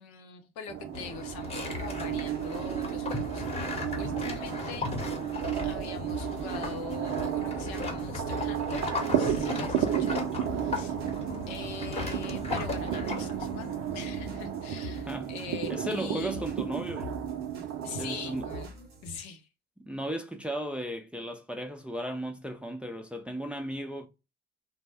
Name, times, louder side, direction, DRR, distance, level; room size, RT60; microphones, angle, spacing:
voice 1, 0.0-4.9 5.6-10.9 11.5-16.5 17.8-19.5, left 6 dB, 65° left, 0.8 m, -43 dB
sound 1, 0.7-18.7, right 10 dB, 50° right, 0.5 m, -33 dB
sound 2, 0.9-15.1, left 3 dB, 20° left, 1.0 m, -37 dB
sound 3, 1.7-19.2, left 3 dB, 85° right, 0.7 m, -46 dB
voice 2, 15.7-17.2 18.0-18.4 19.9-24.1, right 1 dB, 5° right, 0.5 m, -35 dB
3.4 x 2.1 x 3.1 m
hypercardioid pair, 55°, 30 cm